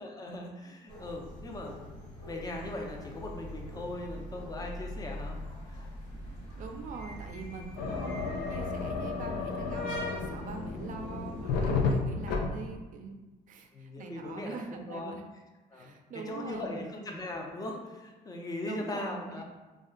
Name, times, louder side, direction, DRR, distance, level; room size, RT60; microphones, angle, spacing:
voice 1, 0.0-5.4 5.7-5.9 7.8-8.2 13.7-14.6 14.9-15.1 15.7-19.4, left 2 dB, 20° left, 1 dB, 0.5 m, -39 dB
sound 1, 0.9-12.0, left 1 dB, 55° left, 1.4 m, -43 dB
voice 2, 6.3-13.2 13.5-15.2 15.7-17.0 18.6-19.4, right 4 dB, 50° right, 4 dB, 0.4 m, -43 dB
sound 2, 7.8-12.8, left 4 dB, 80° left, 0.4 m, -32 dB
2.4 x 2.1 x 3.7 m, 1.2 s
cardioid pair, 110°, 17 cm